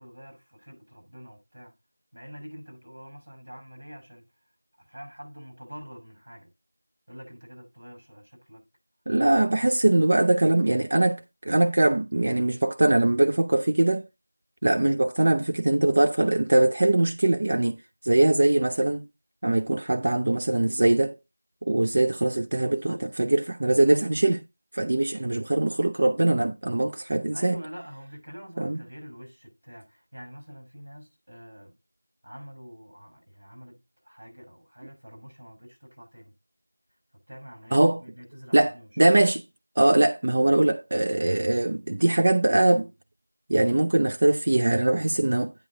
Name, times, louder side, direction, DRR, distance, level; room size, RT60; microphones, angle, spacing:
voice 1, 0.0-1.7 2.1-4.2 4.8-6.5 7.1-8.7 9.2-9.8 22.5-23.1 27.3-31.8 32.2-36.3 37.3-38.9, equal, 70° right, 6.1 m, -46 dB
voice 2, 9.1-14.0 14.6-19.0 19.4-21.2 21.6-24.4 24.7-27.6 28.6-28.8 37.7-38.0 38.5-39.4 39.8-42.9 43.5-45.5, right 2 dB, 40° right, 0.5 m, -22 dB
9.2 x 6.0 x 3.7 m
figure-of-eight pair, 175°, 0 cm